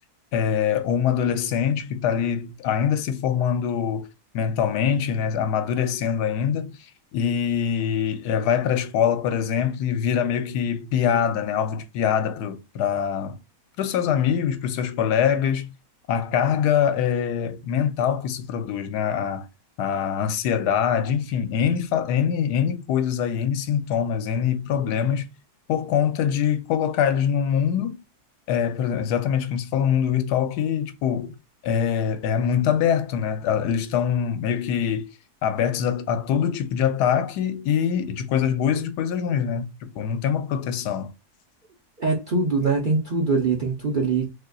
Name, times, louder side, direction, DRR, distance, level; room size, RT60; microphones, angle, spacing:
voice 1, 0.3-4.1 4.3-13.4 13.8-15.7 16.1-19.5 19.8-25.3 25.7-28.0 28.5-31.4 31.6-35.1 35.4-41.1, left 8 dB, 85° left, 1.1 m, -24 dB
voice 2, 42.0-44.3, right 4 dB, 55° right, 0.5 m, -23 dB
3.7 x 2.9 x 2.3 m
omnidirectional pair, 1.7 m